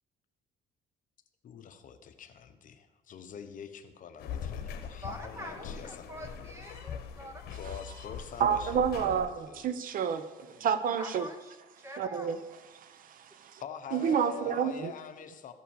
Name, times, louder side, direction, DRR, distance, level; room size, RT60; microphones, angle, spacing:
voice 1, 1.4-6.1 7.6-9.7 13.6-15.5, left 7 dB, 50° left, 8 dB, 0.9 m, -45 dB
sound 1, 4.2-9.3, left 7 dB, 70° left, 1.2 m, -41 dB
voice 2, 5.0-7.4 11.0-11.5 11.8-12.3, equal, 15° right, 4 dB, 1.8 m, -44 dB
voice 3, 8.4-11.3 12.0-12.4 12.7-13.6 13.9-14.9, right 7 dB, 55° right, 11 dB, 0.7 m, -30 dB
14.0 x 5.7 x 7.2 m, 1.2 s
cardioid pair, 110°, 17 cm